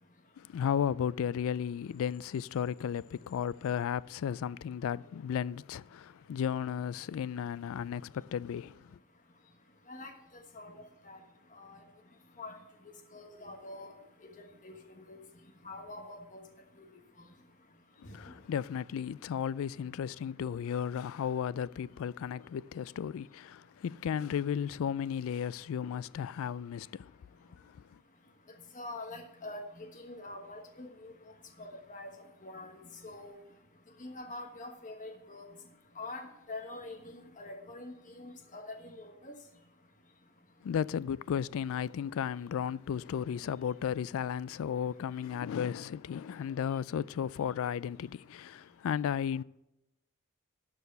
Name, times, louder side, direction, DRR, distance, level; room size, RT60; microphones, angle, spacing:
voice 1, 0.4-9.0 18.0-27.1 40.6-49.4, left 8 dB, 70° left, 0.3 m, -34 dB
voice 2, 13.1-13.9 14.6-15.2 15.6-16.4 18.2-18.3 28.7-31.1 31.6-32.1 32.4-32.7 33.0-33.3 34.0-35.5 36.0-39.3, left 2 dB, 35° left, 1.3 m, -45 dB
12.0 x 4.7 x 7.7 m
head